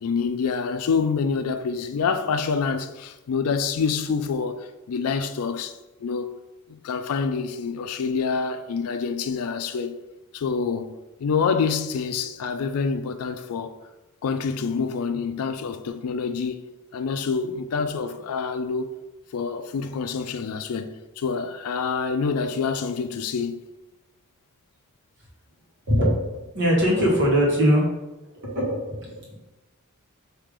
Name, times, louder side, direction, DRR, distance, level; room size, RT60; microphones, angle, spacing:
voice 1, 0.0-6.3 6.7-10.0 10.3-13.8 14.2-16.6 16.9-18.9 19.3-23.6, left 5 dB, 80° left, 0.4 m, -27 dB
voice 2, 25.9-27.8 28.4-29.3, equal, 55° right, 1.5 m, -21 dB
4.8 x 2.8 x 3.7 m
head